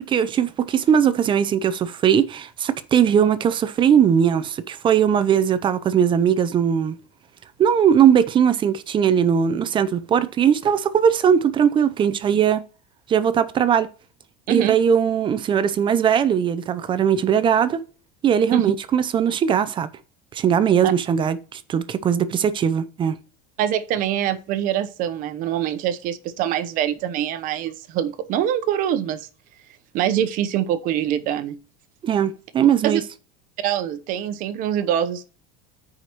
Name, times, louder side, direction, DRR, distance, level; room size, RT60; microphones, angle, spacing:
voice 1, 0.1-7.0 7.6-12.6 13.1-13.9 14.5-17.8 18.2-19.9 20.3-23.2 32.0-33.0, right 8 dB, 25° right, 0.6 m, -19 dB
voice 2, 14.5-14.8 18.5-18.7 20.8-20.9 23.6-29.3 29.9-31.6 32.8-33.0 33.6-35.3, right 10 dB, 50° right, 0.9 m, -24 dB
14.5 x 5.0 x 3.0 m
supercardioid pair, 140°, 18 cm